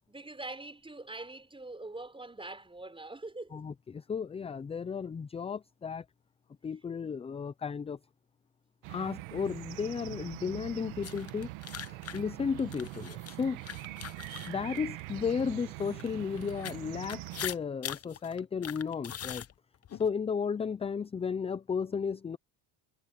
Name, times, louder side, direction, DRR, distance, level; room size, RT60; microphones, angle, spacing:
voice 1, 0.1-3.6, right 2 dB, 10° right, 5.3 m, -43 dB
voice 2, 3.5-6.0 6.6-8.0 8.9-11.5 12.1-13.6 14.5-19.4 19.9-22.4, left 6 dB, 15° left, 0.4 m, -34 dB
sound 1, 8.8-17.5, right 20 dB, 80° right, 1.6 m, -43 dB
sound 2, 11.0-15.3 15.8-20.1, left 9 dB, 30° left, 0.9 m, -42 dB
cardioid pair, 110°, 48 cm